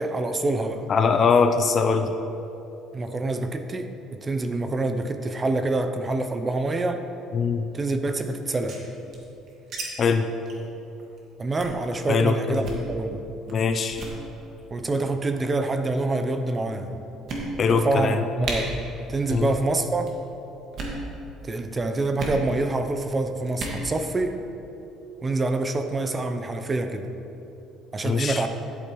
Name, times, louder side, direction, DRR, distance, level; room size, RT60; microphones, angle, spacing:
voice 1, 0.0-0.9 2.9-7.0 7.7-8.8 11.4-13.3 14.7-17.0 17.7-18.7 19.1-20.2 21.4-24.4 25.2-27.1 27.9-28.5, right 2 dB, 20° right, 7 dB, 0.5 m, -26 dB
voice 2, 0.9-2.1 7.3-7.7 10.0-10.2 12.1-12.7 13.5-14.0 17.6-18.2 19.3-19.5 28.0-28.4, left 5 dB, 35° left, 7 dB, 0.4 m, -22 dB
sound 1, 8.4-9.8 10.1-10.2 10.5-10.7 11.0-11.2 11.6-11.8 12.5-12.9 13.5-13.6 13.9-14.2 15.1-15.5 16.2-16.3 16.7-16.8 17.3-17.8 18.1-18.2 18.4-18.6 19.2-19.5 19.7-20.1 20.6-21.0 22.2-22.4 23.5-23.8, right 2 dB, 50° right, 1.7 m, -34 dB
13.0 x 8.0 x 3.1 m, 3.0 s
cardioid pair, 140°, 0 cm